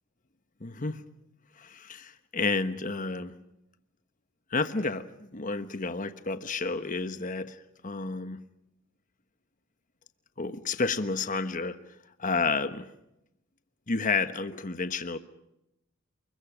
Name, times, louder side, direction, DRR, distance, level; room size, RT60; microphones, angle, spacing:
voice 1, 0.6-1.0 1.6-3.3 4.5-8.4 10.4-11.8 12.2-12.9 13.9-15.2, left 4 dB, 40° left, 10 dB, 1.3 m, -31 dB
29.5 x 22.0 x 6.1 m, 0.84 s
head